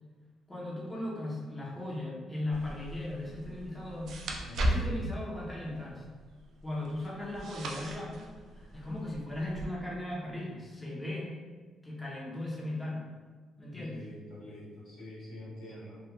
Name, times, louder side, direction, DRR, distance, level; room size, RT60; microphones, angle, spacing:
voice 1, 0.5-4.2 4.6-6.2 6.6-11.3 11.8-13.1 13.6-14.0, left 1 dB, 20° left, -4 dB, 0.8 m, -37 dB
sound 1, 2.5-9.7, right 1 dB, 70° right, 0.3 m, -37 dB
voice 2, 4.4-4.9 13.7-16.0, left 1 dB, 75° left, -8 dB, 1.3 m, -46 dB
2.9 x 2.3 x 2.2 m, 1.4 s
cardioid pair, 90°, 0 cm